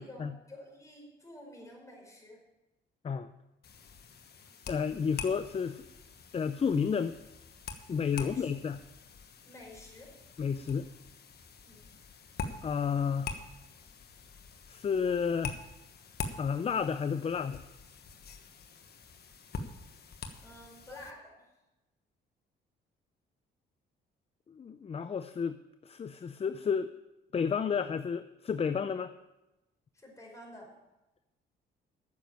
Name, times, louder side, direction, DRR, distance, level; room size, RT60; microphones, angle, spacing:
voice 1, 0.0-2.4 8.1-8.5 9.4-10.1 11.6-11.9 20.4-21.3 29.9-30.7, left 1 dB, 15° left, -1 dB, 5.2 m, -50 dB
sound 1, 3.6-21.1, left 5 dB, 55° left, 1.3 m, -45 dB
voice 2, 4.7-5.8 6.3-7.1 7.9-8.8 10.4-10.9 12.6-13.4 14.7-15.6 16.4-17.6 24.5-26.9 27.3-29.1, left 6 dB, 30° left, 12 dB, 0.5 m, -31 dB
9.6 x 7.1 x 9.1 m, 0.99 s
cardioid pair, 90°, 20 cm